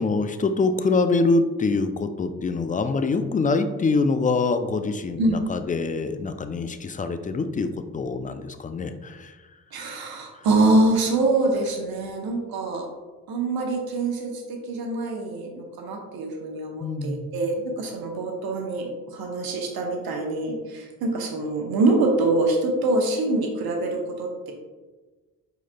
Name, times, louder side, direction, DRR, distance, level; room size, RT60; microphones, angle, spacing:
voice 1, 0.0-9.3 10.3-10.5 16.8-17.3, left 3 dB, 20° left, 9 dB, 0.4 m, -25 dB
voice 2, 9.7-12.8 13.3-24.5, right 2 dB, 70° right, 2 dB, 1.0 m, -25 dB
4.7 x 4.2 x 2.3 m, 1.3 s
supercardioid pair, 45°, 38 cm